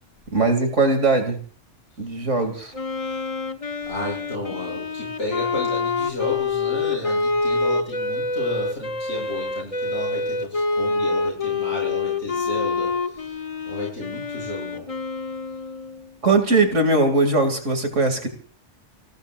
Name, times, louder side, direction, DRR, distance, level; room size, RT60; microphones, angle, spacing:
voice 1, 0.3-1.4 2.0-2.7 16.2-18.3, right 3 dB, 80° right, 6 dB, 3.2 m, -20 dB
Wind instrument woodwind instrument, 2.7-16.1, left 3 dB, 30° left, 1.1 m, -26 dB
voice 2, 3.8-12.9 13.7-14.9, left 2 dB, 70° left, -2 dB, 8.2 m, -32 dB
28.5 x 19.5 x 2.6 m, 0.43 s
omnidirectional pair, 1.2 m